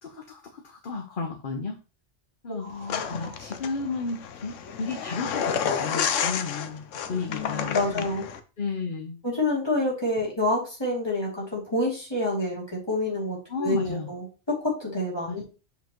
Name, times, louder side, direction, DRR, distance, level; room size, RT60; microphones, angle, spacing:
voice 1, 0.0-1.8 2.4-2.7 3.1-6.8 7.1-8.1 8.6-9.2 13.5-14.1 15.3-15.4, left 4 dB, 45° left, 2 dB, 1.0 m, -33 dB
voice 2, 2.5-3.4 7.3-8.3 9.2-15.4, left 1 dB, 20° left, -4 dB, 2.9 m, -28 dB
sound 1, 2.9-8.4, left 7 dB, 85° left, 1.1 m, -30 dB
7.2 x 5.2 x 3.0 m, 0.34 s
omnidirectional pair, 1.2 m